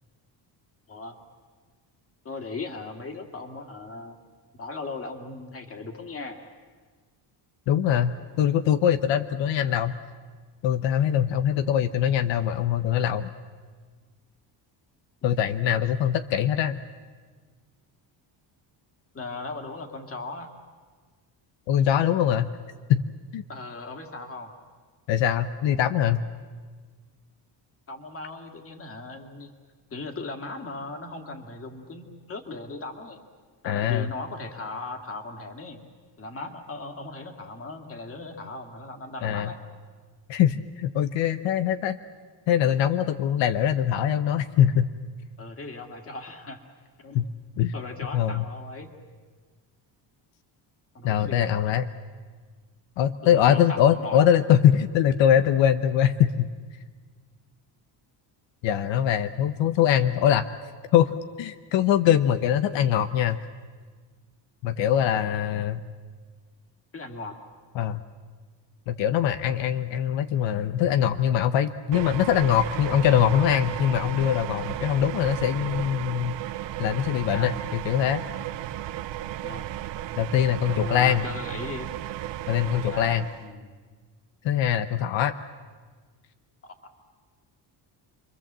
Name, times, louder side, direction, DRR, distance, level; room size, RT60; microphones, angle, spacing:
voice 1, 0.9-1.2 2.2-4.2 4.5-6.4 15.2-15.7 19.1-20.5 23.5-24.5 27.9-29.5 29.9-33.2 33.6-35.8 36.2-39.6 45.4-46.6 47.0-47.2 47.7-48.9 50.9-51.5 53.2-54.2 65.1-65.3 66.9-67.4 77.3-77.6 79.1-79.7 80.7-81.9 82.7-83.8 86.8-86.9, left 3 dB, 30° left, 4 dB, 2.3 m, -38 dB
voice 2, 7.7-9.9 10.6-13.3 15.2-16.8 21.7-22.5 22.9-23.1 23.3-23.4 25.1-26.2 33.6-34.1 39.2-39.5 40.3-42.0 42.5-44.9 47.1-47.3 47.6-47.7 48.1-48.4 51.0-51.9 53.0-56.5 58.6-60.4 60.9-63.4 64.6-65.8 67.7-68.0 68.9-76.4 76.8-78.2 80.2-81.3 82.5-83.3 84.4-85.3, left 10 dB, 85° left, 9 dB, 1.1 m, -23 dB
sound 1, 71.9-83.5, right 13 dB, 75° right, 0.9 m, -34 dB
29.0 x 23.5 x 7.5 m, 1.5 s
cardioid pair, 180°, 44 cm